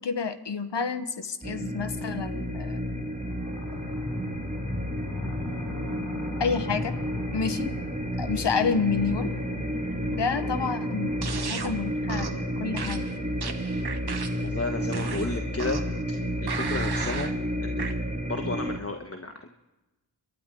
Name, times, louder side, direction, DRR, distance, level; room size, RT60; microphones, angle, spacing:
voice 1, 0.0-2.8 6.4-7.0 7.3-7.8 8.2-9.3 10.1-13.1, left 5 dB, 80° left, 10 dB, 1.3 m, -29 dB
sound 1, 1.4-18.8, equal, 20° right, 2.0 m, -31 dB
sound 2, 3.2-13.7, left 3 dB, 50° left, 2.1 m, -40 dB
sound 3, 11.2-11.7 12.1-12.4 12.8-14.5 14.9-16.0 16.5-17.3 17.8-17.9, right 5 dB, 65° right, 1.4 m, -35 dB
voice 2, 14.4-15.8 16.1-17.3 17.6-18.0 18.3-19.5, left 3 dB, 35° left, 4 dB, 1.3 m, -33 dB
28.5 x 12.5 x 3.8 m, 1.1 s
wide cardioid pair, 80°, 41 cm